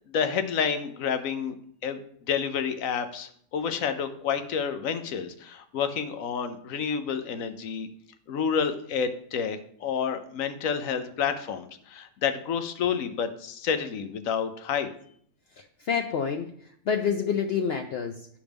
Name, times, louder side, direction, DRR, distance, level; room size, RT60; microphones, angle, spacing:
voice 1, 0.1-1.6 1.8-7.9 8.3-14.9, left 7 dB, 85° left, 9 dB, 1.2 m, -29 dB
voice 2, 15.5-18.3, left 7 dB, 60° left, 4 dB, 0.7 m, -28 dB
10.5 x 5.0 x 3.5 m, 0.64 s
omnidirectional pair, 1.4 m